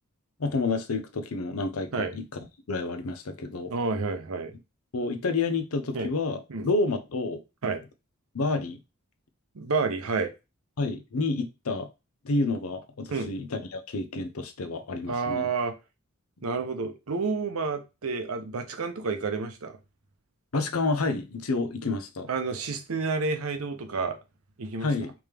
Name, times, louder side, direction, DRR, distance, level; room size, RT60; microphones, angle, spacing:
voice 1, 0.4-2.2 2.7-3.7 4.9-7.4 8.3-8.8 10.8-11.9 12.2-15.5 20.5-22.3 24.8-25.1, left 3 dB, 90° left, 0.6 m, -29 dB
voice 2, 3.7-4.6 5.9-6.1 6.5-6.7 7.6-7.8 9.5-10.3 13.1-13.3 15.1-15.8 16.4-19.8 22.3-24.2 24.6-24.9, right 4 dB, 80° right, 0.7 m, -30 dB
3.5 x 3.0 x 3.3 m
head